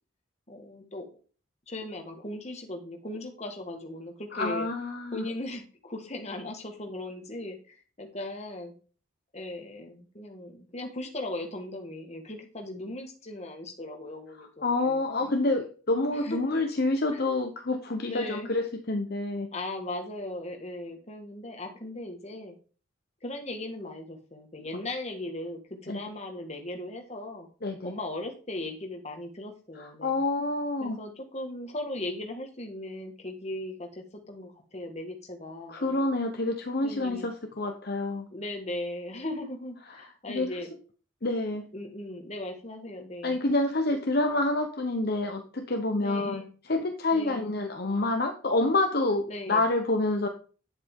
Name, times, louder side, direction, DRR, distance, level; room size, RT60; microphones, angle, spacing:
voice 1, 0.5-1.1 1.7-4.7 5.1-8.7 9.3-15.3 16.1-16.6 17.1-17.2 18.0-18.5 19.5-22.6 23.2-27.5 27.8-30.2 30.8-36.1 36.8-37.3 38.3-40.7 41.5-43.4 46.0-46.5 47.1-47.5 49.3-49.6, left 1 dB, 30° left, 3 dB, 1.7 m, -38 dB
voice 2, 4.3-5.3 14.4-19.5 25.9-26.0 27.6-27.9 29.8-31.0 35.7-38.3 40.3-40.5 41.2-41.6 43.2-46.4 46.7-50.3, left 2 dB, 50° left, 4 dB, 1.0 m, -28 dB
9.6 x 7.9 x 3.7 m, 0.38 s
head